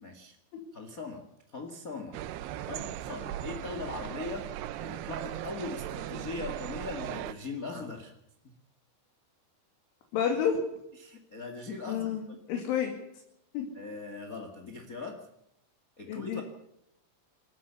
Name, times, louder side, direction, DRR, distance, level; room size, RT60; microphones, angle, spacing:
voice 1, 0.0-0.3 0.7-1.2 1.5-2.2 2.6-8.1 11.0-12.1 13.7-15.3 16.0-16.4, left 3 dB, 50° left, 5 dB, 1.0 m, -40 dB
sound 1, 2.1-7.3, right 13 dB, 75° right, 2.6 m, -38 dB
voice 2, 10.1-10.6 11.9-12.9 13.5-13.7 16.1-16.4, left 7 dB, 85° left, 2 dB, 5.0 m, -30 dB
28.5 x 14.0 x 7.1 m, 0.81 s
omnidirectional pair, 5.4 m